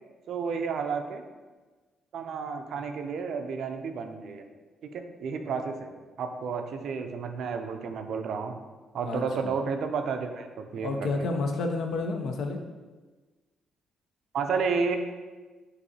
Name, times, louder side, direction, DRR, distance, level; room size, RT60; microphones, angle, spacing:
voice 1, 0.3-1.2 2.1-4.4 4.8-5.9 6.2-8.5 8.9-11.1 14.3-15.0, right 5 dB, 70° right, 6 dB, 0.4 m, -31 dB
voice 2, 9.0-9.5 10.8-12.6, left 3 dB, 70° left, 4 dB, 0.5 m, -30 dB
6.3 x 2.6 x 2.7 m, 1.3 s
cardioid pair, 90°, 0 cm